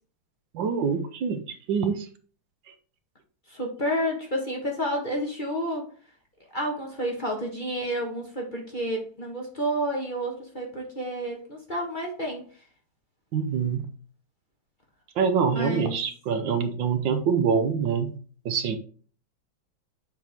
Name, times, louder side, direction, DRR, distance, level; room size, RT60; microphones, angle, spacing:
voice 1, 0.5-1.4 1.7-2.1 13.3-13.8 15.2-18.1 18.4-18.8, right 6 dB, 70° right, 8 dB, 1.6 m, -25 dB
voice 2, 3.5-5.9 6.5-12.4 15.5-16.0, equal, 30° left, 0 dB, 1.3 m, -30 dB
7.7 x 4.8 x 3.5 m, 0.41 s
omnidirectional pair, 2.1 m